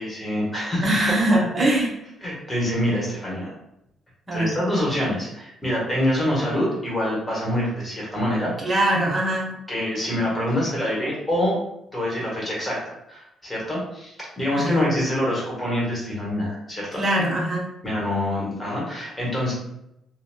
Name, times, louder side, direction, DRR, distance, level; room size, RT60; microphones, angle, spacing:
voice 1, 0.0-0.8 2.2-3.5 4.3-8.7 9.7-11.6 11.9-17.0 17.8-19.5, left 1 dB, 15° left, -5 dB, 1.4 m, -25 dB
voice 2, 0.8-1.9 4.3-4.5 8.6-9.6 14.5-14.8 17.0-17.7, right 1 dB, 30° right, -2 dB, 0.9 m, -22 dB
2.9 x 2.3 x 2.2 m, 0.83 s
cardioid pair, 90°, 0 cm